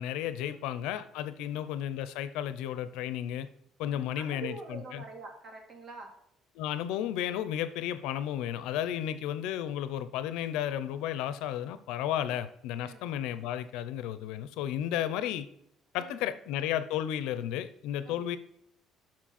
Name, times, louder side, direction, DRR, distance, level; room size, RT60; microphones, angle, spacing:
voice 1, 0.0-3.5 3.8-5.0 6.5-15.5 15.9-18.4, left 11 dB, 90° left, 13 dB, 0.7 m, -33 dB
voice 2, 1.4-1.7 3.8-6.1 12.2-12.3 12.8-13.0 15.9-16.3 18.0-18.4, right 4 dB, 40° right, 1 dB, 2.5 m, -46 dB
7.4 x 6.0 x 4.3 m, 0.72 s
cardioid pair, 125°, 0 cm